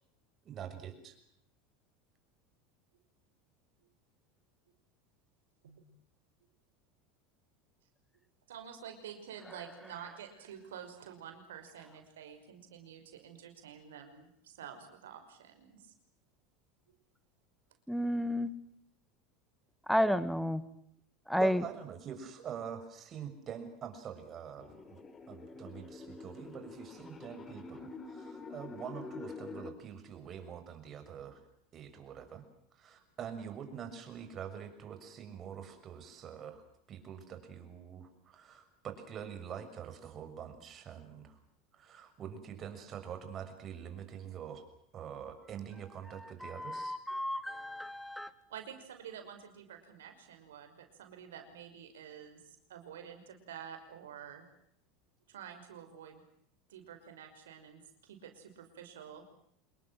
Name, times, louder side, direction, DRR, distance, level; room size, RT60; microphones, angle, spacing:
voice 1, 0.4-1.2 21.4-25.0 25.3-31.4 31.7-32.4 32.7-36.6 36.9-41.4 41.7-44.6 44.9-46.9, right 8 dB, 40° right, 8 dB, 6.6 m, -45 dB
voice 2, 8.5-15.9 48.5-54.4 55.3-56.2 56.7-59.2, right 8 dB, 85° right, 6 dB, 5.6 m, -49 dB
voice 3, 17.9-18.5 19.9-20.6 21.3-21.6 46.4-48.3, equal, ahead, 14 dB, 2.1 m, -31 dB
sound 1, 24.6-29.7, left 4 dB, 30° left, 3.8 m, -47 dB
27.0 x 21.5 x 7.8 m, 0.70 s
hypercardioid pair, 95°, 0 cm